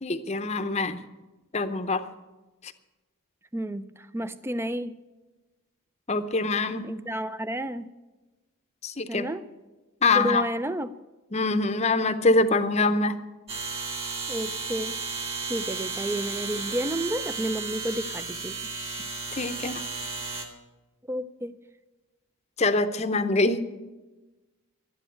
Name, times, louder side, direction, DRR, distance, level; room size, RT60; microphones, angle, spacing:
voice 1, 0.0-1.0 1.5-2.1 6.1-6.9 8.8-9.2 10.0-10.5 11.3-13.2 19.4-19.8 22.6-23.6, left 3 dB, 30° left, 10 dB, 0.7 m, -24 dB
voice 2, 3.5-5.0 6.8-7.9 9.1-9.4 10.1-10.9 14.3-15.0 15.5-18.5 21.1-21.6, right 1 dB, 10° right, 13 dB, 0.4 m, -31 dB
sound 1, 13.5-20.4, right 4 dB, 30° right, 2.1 m, -34 dB
12.0 x 10.0 x 9.0 m, 1.1 s
head